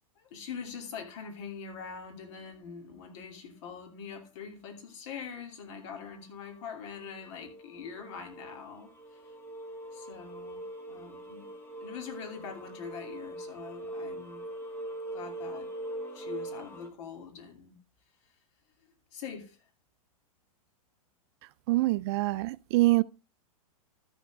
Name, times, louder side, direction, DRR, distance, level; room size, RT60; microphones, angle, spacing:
voice 1, 0.2-9.2 9.9-11.5 11.8-14.4 15.1-15.7 16.1-17.8 19.1-19.6, left 6 dB, 55° left, 2.9 m, -43 dB
sound 1, 6.5-6.6 7.0-16.9, right 1 dB, 10° left, 1.7 m, -42 dB
voice 2, 21.7-23.0, right 19 dB, 45° right, 0.4 m, -25 dB
13.0 x 6.4 x 3.4 m
hypercardioid pair, 125°, 18 cm